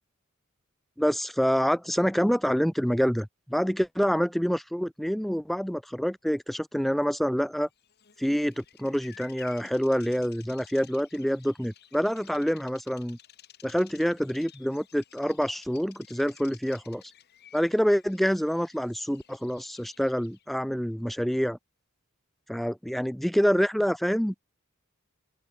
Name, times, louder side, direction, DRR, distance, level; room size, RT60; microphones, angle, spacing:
voice 1, 1.0-7.7 8.2-13.2 13.6-17.0 17.5-21.6 22.5-24.4, equal, ahead, 0.3 m, -27 dB
Bird vocalization bird call bird song, 7.8-20.5, left 11 dB, 50° left, 1.3 m, -55 dB
open air
head